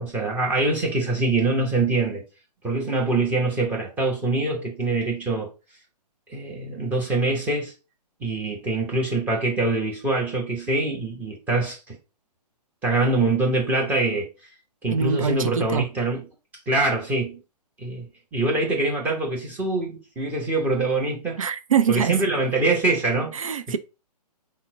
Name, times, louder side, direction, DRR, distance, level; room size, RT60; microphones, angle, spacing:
voice 1, 0.0-2.2 2.6-5.5 6.3-7.7 8.2-12.0 12.8-14.3 14.8-16.3 16.7-17.4 17.8-18.0 18.3-21.4 21.9-23.3, right 2 dB, 10° right, 0.9 m, -24 dB
voice 2, 14.9-15.9 21.4-22.2 23.3-23.8, right 7 dB, 55° right, 0.5 m, -24 dB
5.7 x 2.2 x 3.8 m
figure-of-eight pair, 130°, 21 cm